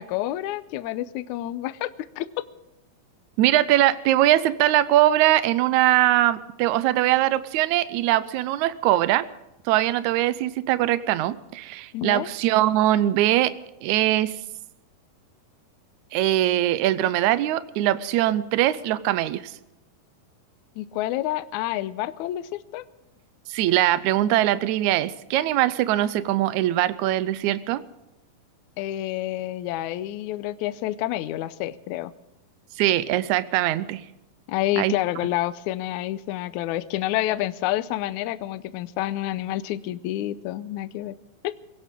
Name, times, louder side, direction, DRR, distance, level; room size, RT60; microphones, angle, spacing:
voice 1, 0.0-2.5 11.9-12.3 20.8-22.9 28.8-32.1 34.5-41.1 41.4-41.5, left 14 dB, 85° left, 14 dB, 1.7 m, -29 dB
voice 2, 3.4-9.2 9.7-13.5 13.8-14.3 16.1-19.5 23.5-27.8 32.8-34.0 34.8-34.9, right 14 dB, 85° right, 14 dB, 1.7 m, -21 dB
22.5 x 17.0 x 3.7 m, 0.91 s
omnidirectional pair, 4.2 m